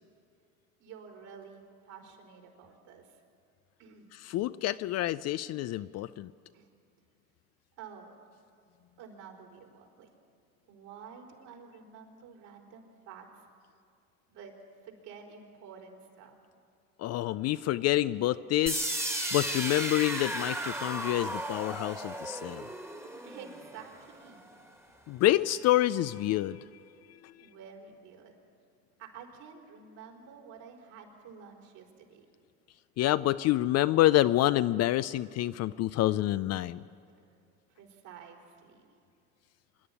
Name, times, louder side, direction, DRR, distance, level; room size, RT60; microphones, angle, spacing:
voice 1, 0.8-3.2 3.8-4.1 6.5-6.7 7.8-8.2 9.0-10.1 10.7-13.4 14.3-14.6 14.8-16.4 23.2-24.5 27.4-28.3 29.0-32.3 37.7-38.9, right 6 dB, 60° right, 1 dB, 4.5 m, -50 dB
voice 2, 4.2-6.3 17.0-18.9 19.3-22.6 25.1-26.6 33.0-36.8, left 15 dB, 35° left, 14 dB, 0.4 m, -27 dB
sound 1, 18.7-24.6, right 1 dB, 5° right, 1.7 m, -35 dB
25.5 x 11.0 x 9.9 m, 2.3 s
hypercardioid pair, 80°, 44 cm